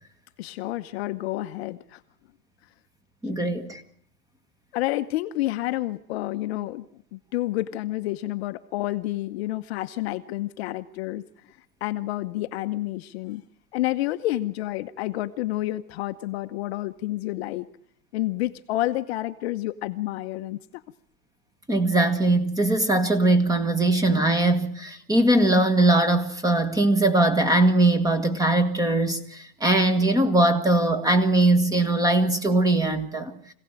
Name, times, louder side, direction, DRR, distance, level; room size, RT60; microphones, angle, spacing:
voice 1, 0.4-2.0 4.7-13.4 13.7-17.7 18.1-20.8, left 16 dB, 40° left, 9 dB, 0.9 m, -29 dB
voice 2, 3.2-3.8 21.7-33.4, right 2 dB, 10° right, 10 dB, 1.6 m, -21 dB
26.0 x 17.0 x 9.0 m, 0.66 s
hypercardioid pair, 145°, 47 cm